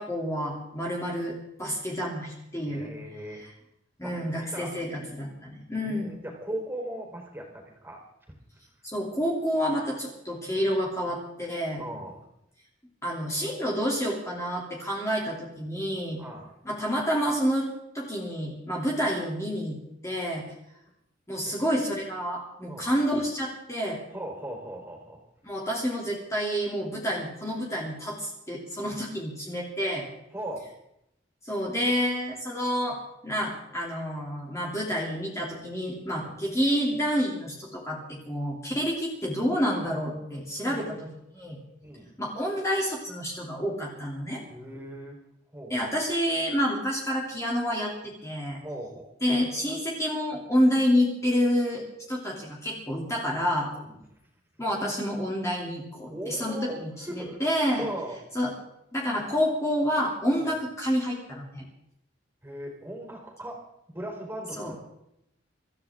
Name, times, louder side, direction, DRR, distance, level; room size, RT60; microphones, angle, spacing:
voice 1, 0.0-2.9 3.4-3.5 4.0-6.2 8.8-11.8 13.0-16.2 16.6-17.7 17.9-19.7 20.0-20.4 21.3-24.0 25.4-30.1 31.4-33.0 33.2-41.1 41.3-41.6 42.2-44.4 45.7-48.6 49.2-53.7 54.6-57.9 58.3-58.5 58.9-61.6 64.6-64.7, equal, 15° left, -3 dB, 2.9 m, -28 dB
voice 2, 2.6-3.4 4.0-4.7 5.7-8.0 11.8-12.2 16.1-16.5 21.5-21.6 22.7-22.9 24.1-25.2 30.3-30.7 36.2-36.4 40.6-40.9 41.8-42.1 44.5-45.2 45.5-45.9 48.6-49.1 53.7-54.0 56.1-56.8 57.0-57.4 57.8-58.2 60.4-60.5 62.4-63.6 63.9-64.8, right 1 dB, 10° right, 0 dB, 4.0 m, -38 dB
24.5 x 14.0 x 3.7 m, 0.80 s
head